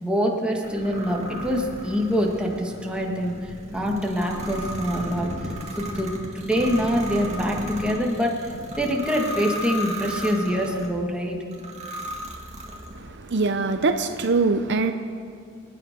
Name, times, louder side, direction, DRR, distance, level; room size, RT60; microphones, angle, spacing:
voice 1, 0.0-5.5 5.8-11.4, equal, 5° right, -1 dB, 1.8 m, -25 dB
sound 1, 0.6-10.9 11.5-13.1, equal, 35° right, 2.0 m, -35 dB
voice 2, 13.0-14.9, right 3 dB, 55° right, 8 dB, 0.7 m, -23 dB
28.0 x 9.4 x 5.2 m, 2.3 s
head